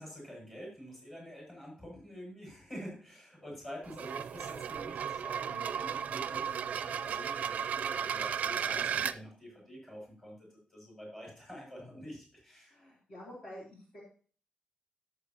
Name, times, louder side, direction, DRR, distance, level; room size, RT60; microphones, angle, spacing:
voice 1, 0.0-12.7, equal, 20° left, -3 dB, 6.3 m, -47 dB
sound 1, 3.8-9.2, right 8 dB, 85° right, 0.4 m, -35 dB
voice 2, 12.7-14.0, equal, 50° left, -5 dB, 3.4 m, -48 dB
17.5 x 6.9 x 2.9 m, 0.41 s
wide cardioid pair, 160°, 3 cm